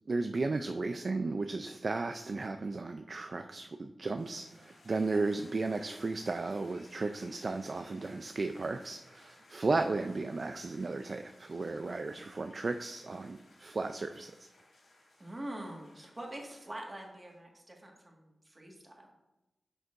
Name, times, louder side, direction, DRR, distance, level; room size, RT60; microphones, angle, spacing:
voice 1, 0.1-14.5, right 3 dB, 45° right, 7 dB, 0.4 m, -34 dB
sound 1, 4.2-17.4, left 2 dB, 85° left, 3.0 m, -60 dB
voice 2, 15.2-19.1, right 1 dB, 25° right, 0 dB, 1.7 m, -45 dB
10.5 x 6.6 x 2.5 m, 0.99 s
wide cardioid pair, 125°, 0 cm